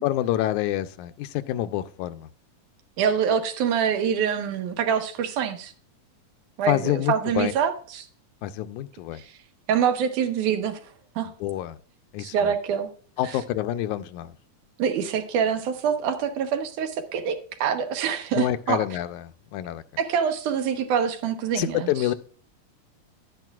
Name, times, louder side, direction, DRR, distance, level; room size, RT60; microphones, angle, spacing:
voice 1, 0.0-2.3 6.7-7.5 8.4-9.2 11.4-11.8 12.1-12.5 13.2-14.3 18.4-19.8 21.6-22.1, left 13 dB, 85° left, 11 dB, 2.0 m, -27 dB
voice 2, 3.0-5.7 6.6-8.1 9.7-10.8 11.2-11.3 12.2-12.9 14.8-17.4 17.6-18.8 20.0-21.9, right 7 dB, 85° right, 7 dB, 2.6 m, -25 dB
11.5 x 9.1 x 2.3 m, 0.44 s
omnidirectional pair, 3.4 m